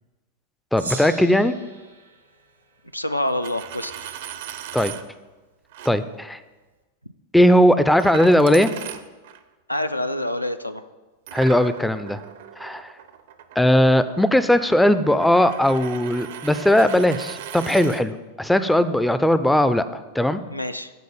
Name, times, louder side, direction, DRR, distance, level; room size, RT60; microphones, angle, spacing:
voice 1, 0.7-1.6 4.7-4.9 5.9-6.4 7.3-8.7 11.3-12.2 12.6-12.9 13.6-20.4, left 1 dB, 5° left, 12 dB, 0.4 m, -18 dB
Gong, 0.8-3.4, right 3 dB, 75° right, 1.0 m, -39 dB
voice 2, 2.9-4.2 9.7-10.8 20.5-20.9, left 1 dB, 85° left, 10 dB, 0.4 m, -27 dB
Coin (dropping), 3.3-5.0 5.7-5.9 8.0-9.4 11.3-18.0, right 10 dB, 55° right, 0.5 m, -38 dB
8.3 x 3.9 x 6.9 m, 1.2 s
figure-of-eight pair, 90°, 0 cm